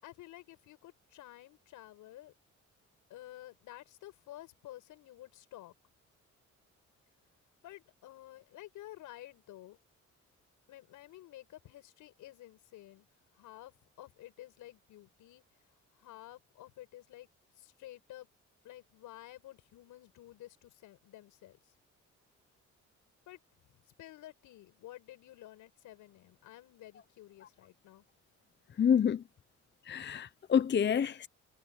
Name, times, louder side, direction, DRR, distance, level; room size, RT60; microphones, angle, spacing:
voice 1, 0.0-2.3 3.1-5.7 7.6-9.8 10.7-13.1 13.3-17.3 17.5-18.3 18.6-21.7 23.3-28.0, left 15 dB, 90° left, 8.0 m, -52 dB
voice 2, 28.8-29.2 29.8-31.3, left 8 dB, 35° left, 0.8 m, -28 dB
cardioid pair, 90°, 30 cm